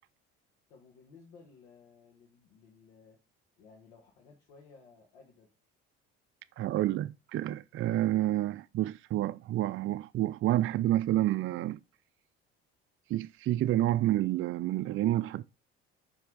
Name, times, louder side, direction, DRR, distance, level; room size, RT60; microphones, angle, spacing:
voice 1, 0.7-3.2 3.6-5.5, left 5 dB, 90° left, 1.6 m, -57 dB
voice 2, 6.6-11.8 13.1-15.4, right 14 dB, 45° right, 0.4 m, -29 dB
6.2 x 3.5 x 4.6 m
supercardioid pair, 70°, 30 cm